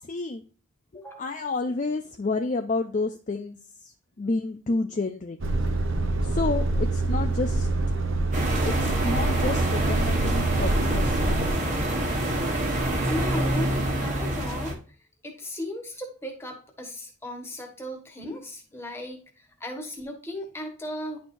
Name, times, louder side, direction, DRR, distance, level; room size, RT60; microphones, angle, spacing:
voice 1, 0.0-0.4 0.9-5.4 6.2-7.7 8.7-11.4 18.2-18.4, left 3 dB, 35° left, 6 dB, 0.4 m, -30 dB
voice 2, 0.9-1.3 13.1-14.8 15.2-21.2, left 1 dB, 10° left, 3 dB, 1.4 m, -36 dB
Truck, 5.4-11.5, right 2 dB, 60° right, 0.9 m, -26 dB
sound 1, 8.3-14.7, right 1 dB, 35° right, 1.4 m, -26 dB
10.5 x 4.4 x 2.6 m, 0.39 s
head